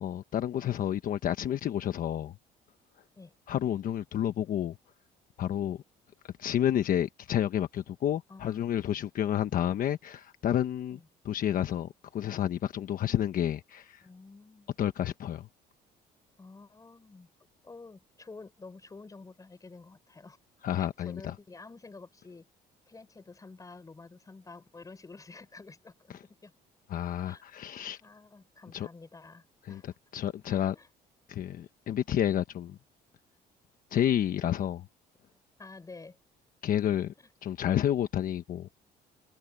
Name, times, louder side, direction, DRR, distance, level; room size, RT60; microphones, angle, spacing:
voice 1, 0.0-2.3 3.5-4.8 5.4-5.8 6.4-11.0 11.2-14.1 14.8-15.5 20.6-21.3 26.9-28.0 28.7-28.9 29.7-29.8 30.1-30.8 31.3-32.8 33.9-34.9 36.6-37.1 37.4-38.8, left 10 dB, 55° left, 1.1 m, -30 dB
voice 2, 8.3-8.8 10.9-11.1 14.0-14.8 16.4-17.3 17.6-20.4 20.8-22.5 22.9-26.5 27.2-27.4 27.7-29.9 30.7-30.9 35.6-36.2 37.2-37.3, left 3 dB, 20° left, 3.9 m, -50 dB
cardioid pair, 110°, 17 cm